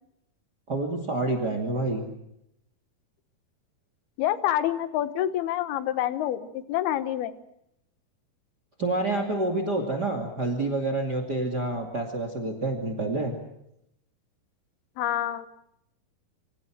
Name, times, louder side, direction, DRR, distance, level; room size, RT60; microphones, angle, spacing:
voice 1, 0.7-2.0 8.8-13.4, right 2 dB, 30° right, 6 dB, 2.7 m, -28 dB
voice 2, 4.2-7.3 15.0-15.5, left 12 dB, 85° left, 12 dB, 3.1 m, -27 dB
28.0 x 25.0 x 6.1 m, 0.80 s
omnidirectional pair, 4.4 m